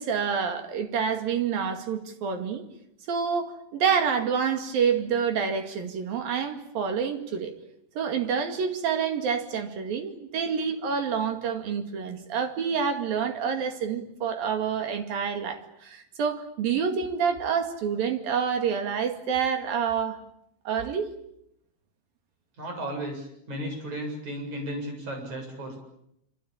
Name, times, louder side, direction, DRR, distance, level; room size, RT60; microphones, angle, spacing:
voice 1, 0.0-2.6 3.1-7.6 7.9-20.2 20.6-21.1, right 6 dB, 55° right, 6 dB, 3.5 m, -28 dB
voice 2, 22.6-25.8, right 1 dB, 35° right, 3 dB, 8.8 m, -34 dB
26.5 x 25.5 x 8.8 m, 0.77 s
omnidirectional pair, 5.8 m